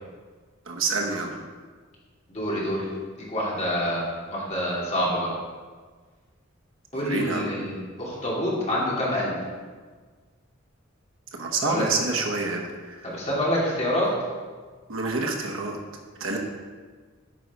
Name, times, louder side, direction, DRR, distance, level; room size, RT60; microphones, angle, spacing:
voice 1, 0.7-1.4 6.9-7.5 11.3-13.1 14.9-15.8 16.2-16.4, right 3 dB, 75° right, 1 dB, 1.1 m, -28 dB
voice 2, 2.3-2.9 3.2-5.3 6.9-9.4 11.6-11.8 13.0-14.1, equal, 35° left, -6 dB, 2.5 m, -27 dB
8.8 x 5.3 x 4.6 m, 1.5 s
head